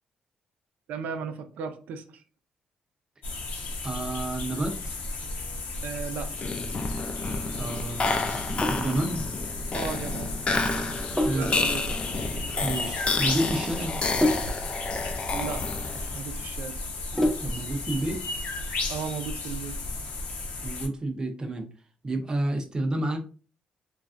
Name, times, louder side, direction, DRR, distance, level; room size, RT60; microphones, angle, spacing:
voice 1, 0.9-2.2 5.8-6.5 9.7-10.3 11.3-11.9 15.3-16.8 18.9-19.8, right 6 dB, 85° right, 8 dB, 0.4 m, -36 dB
sound 1, 3.2-20.9, left 2 dB, 85° left, 0.7 m, -34 dB
voice 2, 3.8-5.0 7.6-9.3 11.2-11.5 12.6-14.0 17.4-18.2 20.6-21.7 22.0-23.2, right 1 dB, 30° right, 4 dB, 0.6 m, -30 dB
sound 2, 6.3-16.2, left 3 dB, 40° left, 0.4 m, -30 dB
Sink (filling or washing), 8.6-17.8, left 1 dB, 10° left, 0.7 m, -32 dB
3.1 x 2.4 x 2.4 m, 0.36 s
cardioid pair, 85°, 3 cm